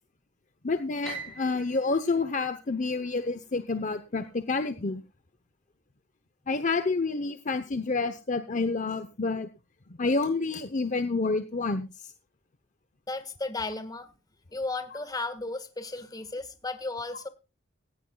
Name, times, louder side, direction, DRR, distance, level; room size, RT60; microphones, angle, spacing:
voice 1, 0.6-5.0 6.5-9.5 9.9-12.1, left 3 dB, 40° left, 10 dB, 0.8 m, -29 dB
Piano, 1.0-3.3, right 2 dB, 5° left, 6.0 m, -43 dB
voice 2, 13.1-14.1 14.5-17.3, left 2 dB, 20° left, 10 dB, 1.6 m, -34 dB
18.5 x 15.5 x 2.3 m, 0.31 s
head